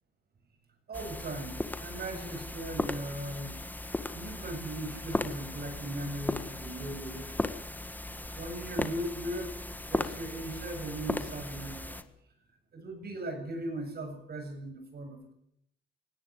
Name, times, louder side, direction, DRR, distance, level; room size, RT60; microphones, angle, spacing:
sound 1, 0.9-12.0, left 1 dB, 10° left, 1.7 m, -37 dB
voice 1, 0.9-3.6 4.1-7.5 8.3-9.6 9.9-12.0 12.7-15.2, right 1 dB, 50° right, 7 dB, 7.2 m, -38 dB
20.0 x 17.0 x 8.3 m, 0.73 s
cardioid pair, 90°, 20 cm